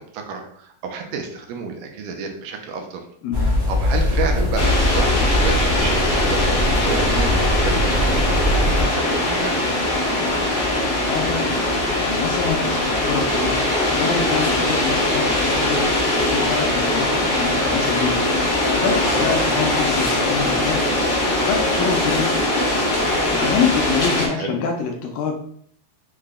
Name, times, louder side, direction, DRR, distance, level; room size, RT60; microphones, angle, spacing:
voice 1, 0.0-3.0 3.4-9.6 19.0-19.7 24.3-24.5, right 5 dB, 80° right, 3 dB, 2.0 m, -31 dB
sound 1, 3.3-8.8, left 1 dB, 30° right, 0.4 m, -21 dB
sound 2, 4.5-24.3, left 1 dB, 60° left, 1.0 m, -21 dB
voice 2, 10.9-13.6 13.9-20.9 21.1-22.3 23.1-25.3, left 5 dB, 80° left, 2 dB, 2.2 m, -26 dB
6.5 x 2.2 x 3.6 m, 0.63 s
omnidirectional pair, 4.3 m